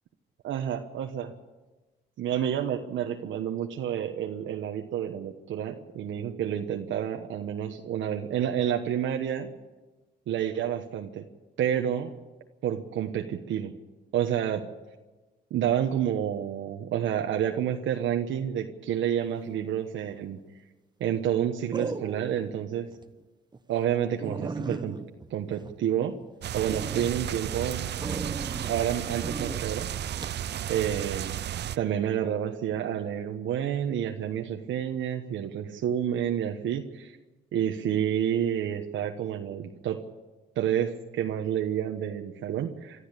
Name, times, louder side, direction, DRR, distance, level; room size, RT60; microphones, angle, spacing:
voice 1, 0.4-1.3 2.2-9.5 10.3-11.3 11.6-12.1 12.6-13.7 14.1-14.7 15.5-20.4 21.0-22.9 23.7-25.0 25.3-26.2 26.5-27.9 28.7-29.9 30.7-31.4 31.8-37.1 37.5-40.0 40.5-43.1, right 10 dB, 75° right, 3 dB, 1.3 m, -29 dB
sound 1, 20.1-20.5 21.7-22.5 22.9-23.0 23.5-23.6 23.9-24.0 24.2-26.2 26.7-27.1 28.0-28.8 29.2-29.6 30.2-30.4, right 3 dB, 20° right, 1.1 m, -36 dB
sound 2, 26.4-31.8, right 11 dB, 60° right, 0.7 m, -33 dB
25.0 x 13.0 x 8.3 m, 1.2 s
cardioid pair, 90°, 20 cm